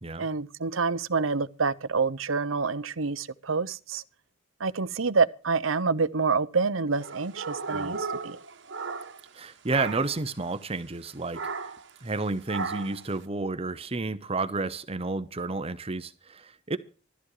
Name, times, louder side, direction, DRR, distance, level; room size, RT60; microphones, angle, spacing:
voice 1, 0.2-4.0 4.6-8.4, right 4 dB, 80° right, 0.9 m, -27 dB
sound 1, 7.0-9.4 9.7-10.2 11.3-11.9 12.5-13.1, right 4 dB, 65° right, 1.4 m, -35 dB
voice 2, 9.3-11.7 12.0-16.8, right 3 dB, 30° right, 0.9 m, -31 dB
17.0 x 13.5 x 5.0 m
head